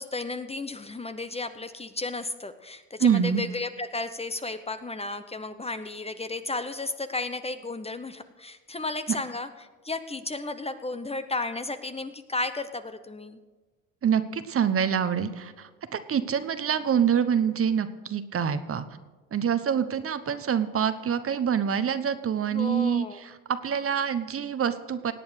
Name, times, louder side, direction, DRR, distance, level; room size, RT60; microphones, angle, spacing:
voice 1, 0.0-9.5 9.8-13.4 22.5-23.2, left 3 dB, 15° left, 10 dB, 0.9 m, -33 dB
voice 2, 3.0-3.4 14.0-18.9 19.3-25.1, right 8 dB, 40° right, 11 dB, 1.0 m, -26 dB
18.0 x 8.5 x 6.4 m, 1.3 s
supercardioid pair, 75°, 34 cm